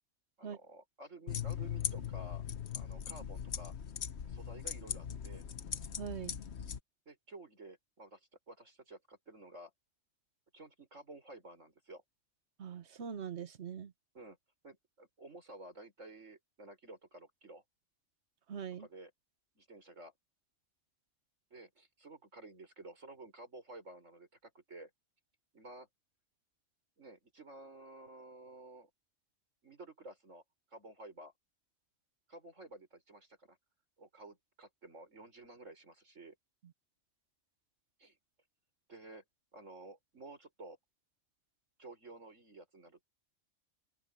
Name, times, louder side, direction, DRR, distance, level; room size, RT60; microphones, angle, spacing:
voice 1, 0.4-2.4 2.7-3.7 4.2-5.4 7.1-8.2 8.5-9.7 10.5-12.0 14.1-14.4 14.6-17.6 18.8-19.1 19.5-20.1 21.5-24.9 25.5-25.9 27.0-28.9 29.6-30.4 30.7-31.3 32.3-33.6 34.0-36.3 38.0-38.2 38.9-39.2 39.5-40.8 41.8-43.0, right 2 dB, 85° right, 6.7 m, -52 dB
sound 1, 1.3-6.8, left 8 dB, 65° left, 1.2 m, -40 dB
voice 2, 6.0-6.4 12.6-13.9 18.5-18.9, right 7 dB, 65° right, 1.3 m, -42 dB
open air
omnidirectional pair, 1.3 m